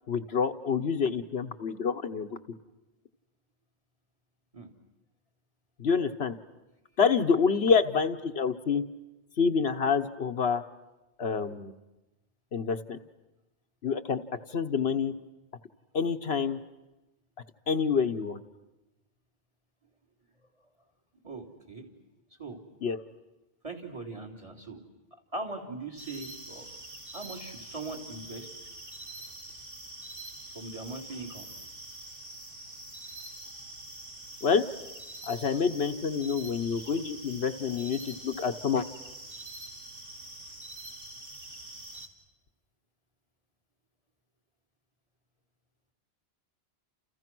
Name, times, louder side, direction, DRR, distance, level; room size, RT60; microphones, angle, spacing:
voice 1, 0.1-2.3 5.8-6.4 7.0-8.8 9.4-10.6 11.2-11.7 12.5-13.0 13.8-14.2 14.5-15.1 15.9-16.6 17.7-18.4 22.8-23.0 34.4-34.6 35.3-38.8, left 6 dB, 75° left, 7 dB, 1.3 m, -27 dB
voice 2, 21.2-21.9 22.4-22.6 23.6-24.8 25.3-26.7 27.1-28.7 30.5-31.5, right 2 dB, 30° right, 4 dB, 3.6 m, -40 dB
sound 1, 26.0-42.1, right 2 dB, 55° right, 2.7 m, -45 dB
30.0 x 29.0 x 6.2 m, 1.0 s
omnidirectional pair, 1.1 m